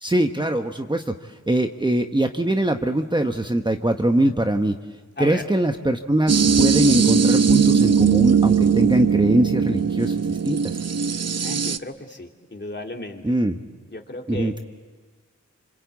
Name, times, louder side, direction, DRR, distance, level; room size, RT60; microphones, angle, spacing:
voice 1, 0.0-4.8 5.2-10.8 13.2-13.6 14.3-14.6, right 1 dB, 15° right, 5 dB, 1.1 m, -22 dB
sound 1, 6.3-11.8, right 6 dB, 55° right, 0.8 m, -19 dB
voice 2, 11.4-13.3 13.9-14.6, left 2 dB, 35° left, 2 dB, 3.0 m, -35 dB
27.0 x 26.0 x 8.5 m, 1.4 s
wide cardioid pair, 70°, 30 cm